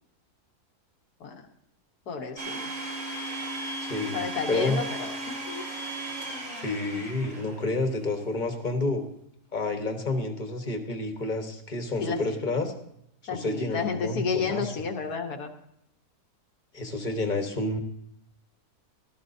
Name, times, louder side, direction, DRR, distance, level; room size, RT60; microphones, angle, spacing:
voice 1, 2.1-2.7 4.1-5.1 5.5-5.7 12.0-12.4 13.3-15.5, left 5 dB, 90° left, 5 dB, 1.7 m, -31 dB
Domestic sounds home sounds, 2.4-7.9, right 2 dB, 50° right, 2.3 m, -36 dB
voice 2, 3.8-4.8 6.6-9.0 9.5-12.7 13.3-14.7 16.7-17.8, left 2 dB, 35° left, 5 dB, 1.2 m, -29 dB
16.5 x 12.5 x 2.7 m, 0.74 s
omnidirectional pair, 1.6 m